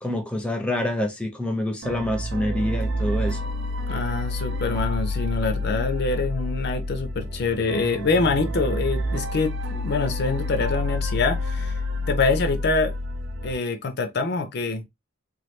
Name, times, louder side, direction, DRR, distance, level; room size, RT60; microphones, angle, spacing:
voice 1, 0.0-3.4, left 1 dB, 5° left, 0.6 m, -26 dB
sound 1, 1.8-13.5, left 1 dB, 60° right, 0.6 m, -28 dB
voice 2, 3.9-11.7 12.1-12.9 13.4-14.8, left 3 dB, 55° left, 0.5 m, -25 dB
3.1 x 2.3 x 3.0 m
head